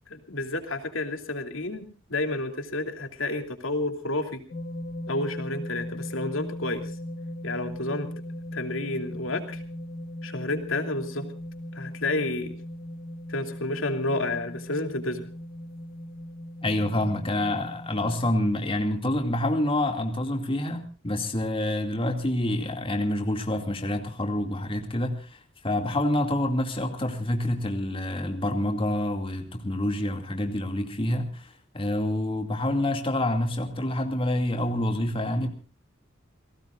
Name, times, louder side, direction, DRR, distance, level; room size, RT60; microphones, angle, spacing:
voice 1, 0.1-4.4 5.1-6.9 7.4-8.1 8.5-9.6 10.2-11.3 11.7-12.5 13.3-15.3, left 2 dB, 75° left, 6 dB, 3.0 m, -30 dB
sound 1, 4.5-18.3, left 1 dB, 50° left, 2.3 m, -38 dB
voice 2, 16.6-35.5, left 1 dB, 25° left, 5 dB, 2.4 m, -27 dB
30.0 x 18.0 x 2.5 m, 0.36 s
head